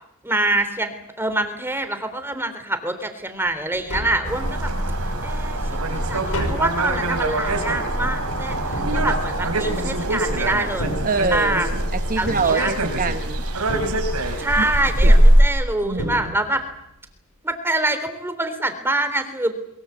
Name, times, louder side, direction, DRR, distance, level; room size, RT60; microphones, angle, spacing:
voice 1, 0.2-4.7 5.2-11.0 11.3-11.7 12.2-12.7 14.4-16.6 17.4-19.5, right 2 dB, 10° right, 9 dB, 3.5 m, -25 dB
Tap, 3.5-3.6 3.7-4.8 5.3-10.0 10.6-11.7 12.3-13.2 13.7-14.5 15.5-15.6 16.0-16.8 17.1-17.2, equal, 90° left, 5.1 m, -33 dB
sound 1, 4.2-15.4, right 1 dB, 90° right, 4.8 m, -22 dB
voice 2, 11.0-13.4 14.2-14.7 15.0-15.1 15.9-16.3, right 4 dB, 40° right, 7 dB, 1.0 m, -25 dB
23.0 x 22.5 x 8.3 m, 0.80 s
head